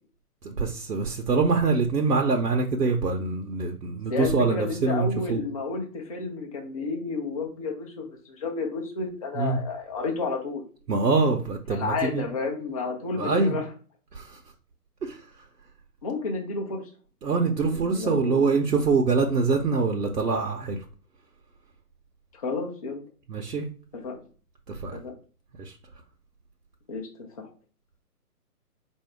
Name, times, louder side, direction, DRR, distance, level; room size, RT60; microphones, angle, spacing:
voice 1, 0.4-5.4 9.3-9.6 10.9-12.3 13.2-13.6 14.1-14.4 15.0-15.2 17.2-20.8 23.3-23.7 24.7-25.0 25.6-25.7, right 4 dB, 80° right, 0.9 m, -24 dB
voice 2, 4.1-10.6 11.7-13.6 16.0-16.8 17.3-18.6 22.3-23.0 24.0-24.2 25.0-25.1 26.9-27.5, left 4 dB, 25° left, 0.6 m, -31 dB
4.3 x 2.7 x 4.5 m
figure-of-eight pair, 145°, 47 cm